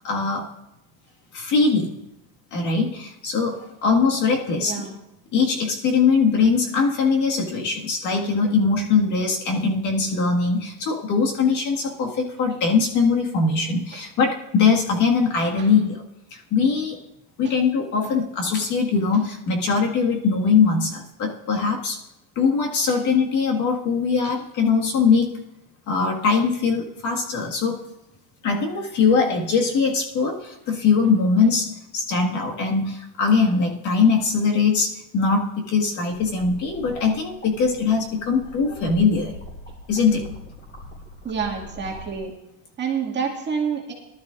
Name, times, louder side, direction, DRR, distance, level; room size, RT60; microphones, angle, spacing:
voice 1, 0.0-0.5 1.3-1.9 2.5-4.8 5.3-16.0 16.3-17.0 17.4-22.0 22.4-25.4 25.9-27.8 28.4-39.3 39.9-40.3, left 5 dB, 45° left, 0 dB, 1.9 m, -21 dB
voice 2, 4.6-4.9 13.9-14.0 15.6-15.7 17.4-17.5 22.9-23.0 24.2-24.3 41.2-42.3 42.8-43.9, right 6 dB, 25° right, -2 dB, 2.2 m, -28 dB
sound 1, 36.1-42.3, equal, 25° left, 4.5 m, -42 dB
19.0 x 12.5 x 2.6 m, 0.89 s
cardioid pair, 150°, 42 cm